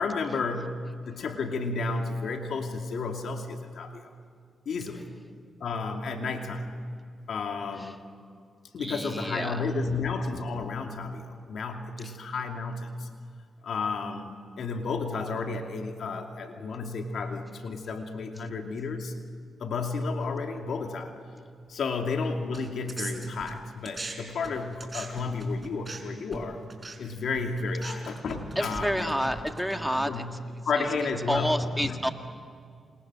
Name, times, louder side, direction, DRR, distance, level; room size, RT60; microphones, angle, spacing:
voice 1, 0.0-4.1 4.7-5.1 5.6-6.8 7.3-8.0 8.7-13.1 13.6-19.1 19.6-21.2 21.7-26.6 27.0-29.2 30.0-30.4 30.6-31.9, left 4 dB, 70° left, 4 dB, 2.7 m, -32 dB
voice 2, 8.8-9.7 28.6-30.2 31.3-32.1, equal, ahead, 6 dB, 1.8 m, -29 dB
sound 1, 22.5-24.1 24.4-30.2, right 3 dB, 30° right, 4.9 m, -40 dB
29.0 x 27.5 x 6.3 m, 2.2 s
cardioid pair, 65°, 0 cm